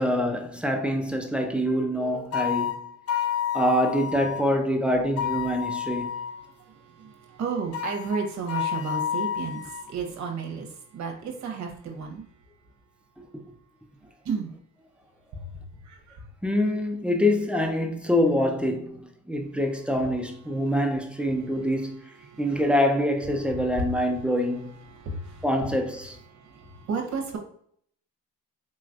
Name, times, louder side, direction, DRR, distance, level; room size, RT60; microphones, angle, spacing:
voice 1, 0.0-2.8 3.5-6.1 13.2-13.3 16.4-22.0 22.4-24.8 25.4-26.2, equal, 5° right, 0.7 m, -25 dB
sound 1, 2.3-4.4 5.2-6.4 7.7-9.9, left 9 dB, 50° left, 0.5 m, -30 dB
voice 2, 6.0-12.4 14.2-14.5 15.3-16.3 19.9-20.2 20.5-22.7 23.4-24.4 24.7-27.4, right 4 dB, 60° right, 1.0 m, -35 dB
4.4 x 3.1 x 2.5 m
supercardioid pair, 80°, 32 cm